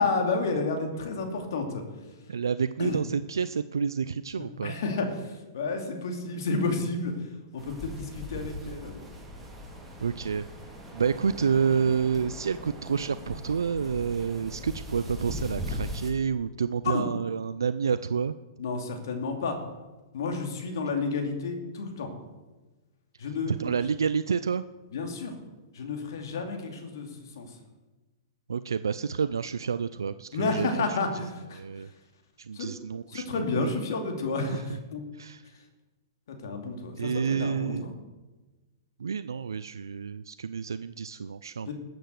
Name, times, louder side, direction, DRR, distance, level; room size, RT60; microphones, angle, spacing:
voice 1, 0.0-1.9 2.8-3.0 4.4-9.1 16.9-17.1 18.6-19.6 20.1-22.1 23.2-23.7 24.9-25.3 25.7-27.6 30.3-31.9 32.5-32.7 33.1-35.0 36.3-37.9 41.7-41.8, left 3 dB, 70° left, 4 dB, 2.7 m, -31 dB
voice 2, 2.3-4.7 10.0-10.5 10.9-18.4 23.5-24.6 28.5-31.0 31.5-31.9 32.4-33.2 33.6-33.7 34.5-34.6 35.1-35.4 37.0-37.9 39.0-41.7, right 6 dB, 85° right, 13 dB, 0.4 m, -29 dB
sound 1, 7.6-16.1, left 1 dB, 5° right, 3.0 m, -40 dB
14.0 x 7.9 x 6.6 m, 1.2 s
hypercardioid pair, 120°, 2 cm